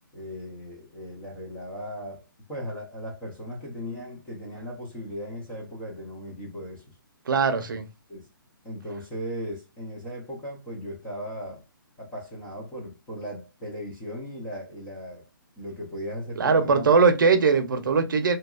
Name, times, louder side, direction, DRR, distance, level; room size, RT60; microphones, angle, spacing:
voice 1, 0.1-7.0 7.7-7.8 8.1-8.3 8.6-11.7 12.0-15.3 15.6-17.0, equal, 5° left, 0.3 m, -37 dB
voice 2, 7.3-7.9 16.4-18.4, right 5 dB, 65° right, 0.6 m, -20 dB
2.7 x 2.3 x 2.2 m
hypercardioid pair, 170°, 12 cm